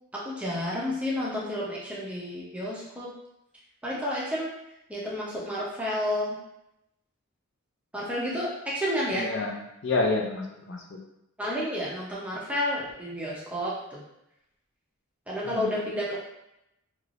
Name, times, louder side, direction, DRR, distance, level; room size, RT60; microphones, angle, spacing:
voice 1, 0.1-3.1 3.8-4.5 4.9-6.4 7.9-9.3 11.4-14.0 15.3-16.2, left 1 dB, 5° right, -6 dB, 0.6 m, -30 dB
voice 2, 9.1-11.0 15.4-15.7, left 3 dB, 55° left, 0 dB, 0.4 m, -29 dB
3.3 x 2.8 x 2.5 m, 0.84 s
head